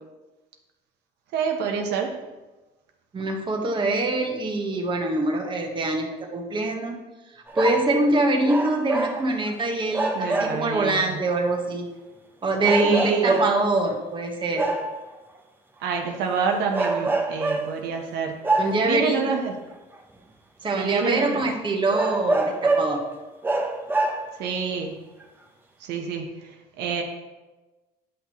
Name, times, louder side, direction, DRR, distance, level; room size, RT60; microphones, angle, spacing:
voice 1, 1.3-2.1 10.1-11.2 12.7-13.4 15.8-18.5 18.8-19.5 20.8-21.5 24.4-25.0 25.8-27.0, right 5 dB, 85° right, 2 dB, 1.0 m, -27 dB
voice 2, 3.1-7.0 7.3-11.9 12.4-14.7 18.6-19.2 20.6-23.0, right 2 dB, 30° right, 1 dB, 1.3 m, -24 dB
sound 1, 7.5-8.0 8.4-9.5 9.9-10.8 11.5-11.6 12.6-13.8 14.5-15.0 16.1-16.3 16.7-17.8 18.4-19.0 19.9-20.0 20.7-20.8 21.1-21.2 21.9-23.0 23.4-24.4 25.2-25.3, right 2 dB, 10° right, 0.9 m, -25 dB
9.9 x 5.9 x 3.1 m, 1.1 s
cardioid pair, 110°, 17 cm